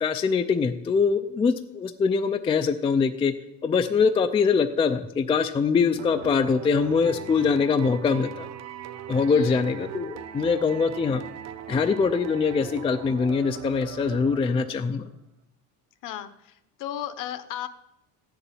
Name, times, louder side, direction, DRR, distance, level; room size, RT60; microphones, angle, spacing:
voice 1, 0.0-3.3 3.6-8.5 9.1-11.2 11.7-15.0, left 5 dB, 15° left, 9 dB, 0.4 m, -23 dB
sound 1, 6.0-14.9, right 9 dB, 45° right, 0.8 m, -39 dB
voice 2, 9.3-9.6 16.0-17.7, left 11 dB, 55° left, 13 dB, 1.0 m, -35 dB
14.0 x 6.9 x 9.2 m, 0.88 s
cardioid pair, 160°, 39 cm